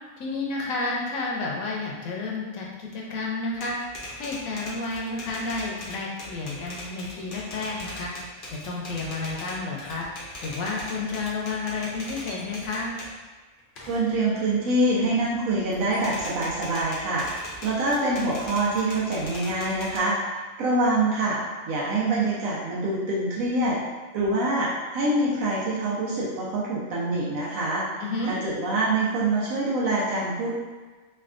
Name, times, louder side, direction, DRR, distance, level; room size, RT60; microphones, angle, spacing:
voice 1, 0.2-3.8 4.2-8.1 8.5-10.1 10.4-13.0 28.0-28.3, left 3 dB, 75° left, -2 dB, 1.0 m, -31 dB
Typewriter, 3.5-13.2 13.6-15.4 15.7-20.0, left 1 dB, 60° left, 0.5 m, -40 dB
voice 2, 13.9-17.3 17.6-21.4 21.7-23.8 24.1-27.9 28.2-30.5, right 2 dB, 75° right, -6 dB, 1.0 m, -25 dB
3.3 x 2.2 x 2.4 m, 1.3 s
omnidirectional pair, 1.5 m